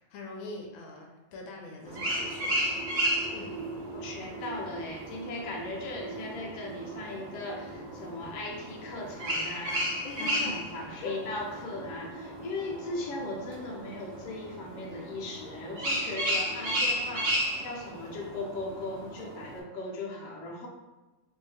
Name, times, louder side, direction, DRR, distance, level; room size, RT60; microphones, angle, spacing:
voice 1, 0.0-2.6 3.3-3.6 10.0-10.6 11.0-11.2, left 2 dB, 85° left, 0 dB, 1.4 m, -42 dB
sound 1, 1.8-19.6, equal, 60° right, 0.8 m, -34 dB
voice 2, 3.9-20.7, left 2 dB, 65° left, -2 dB, 1.2 m, -38 dB
3.1 x 2.6 x 3.2 m, 1.1 s
omnidirectional pair, 2.1 m